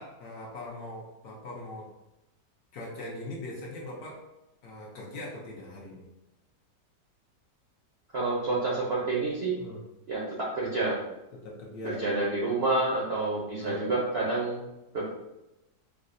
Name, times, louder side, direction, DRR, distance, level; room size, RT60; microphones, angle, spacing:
voice 1, 0.0-1.9 2.7-4.2 4.6-6.1 9.6-9.8 11.3-12.0 13.6-13.9, left 2 dB, 65° left, -2 dB, 1.0 m, -41 dB
voice 2, 8.1-9.5 10.1-10.2 10.5-11.0 11.8-14.6 14.9-15.1, right 2 dB, 60° right, -5 dB, 0.6 m, -28 dB
4.9 x 2.0 x 2.5 m, 0.96 s
omnidirectional pair, 1.9 m